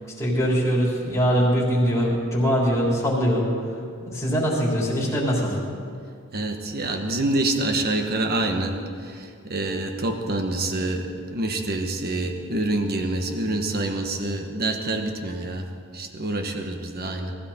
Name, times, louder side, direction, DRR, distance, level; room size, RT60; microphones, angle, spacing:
voice 1, 0.2-3.5 4.0-5.6, equal, 15° left, -5 dB, 3.7 m, -22 dB
voice 2, 6.3-15.7 15.9-17.3, right 2 dB, 45° right, 4 dB, 1.3 m, -26 dB
19.0 x 14.5 x 4.3 m, 2.3 s
head